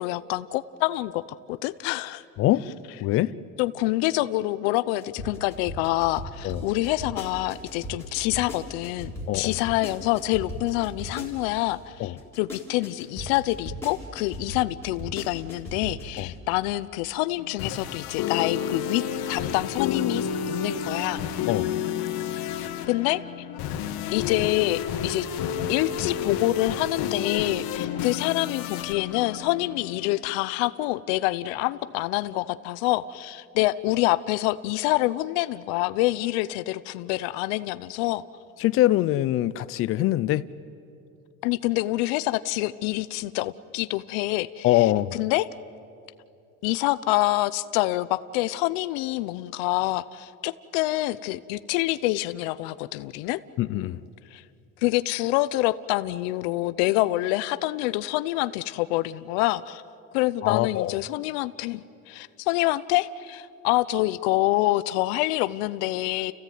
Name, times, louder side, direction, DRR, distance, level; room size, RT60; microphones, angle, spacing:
voice 1, 0.0-2.2 3.6-19.0 19.3-21.2 22.9-23.2 24.1-25.3 25.7-38.2 41.4-44.9 45.1-45.5 46.6-53.4 54.3-54.4 54.8-59.8 60.1-66.3, left 18 dB, 85° left, 15 dB, 0.7 m, -26 dB
voice 2, 3.0-3.3 6.4-6.6 9.3-9.6 12.0-12.2 16.2-16.3 21.5-21.7 38.6-40.4 44.6-45.2 53.6-54.0 60.4-61.0, left 15 dB, 45° left, 17 dB, 0.6 m, -23 dB
sound 1, 5.0-11.7 12.2-16.2, left 1 dB, 10° left, 3.7 m, -37 dB
sound 2, 17.4-30.2, left 8 dB, 65° left, 2.1 m, -31 dB
30.0 x 16.0 x 9.3 m, 2.6 s
cardioid pair, 150°, 30 cm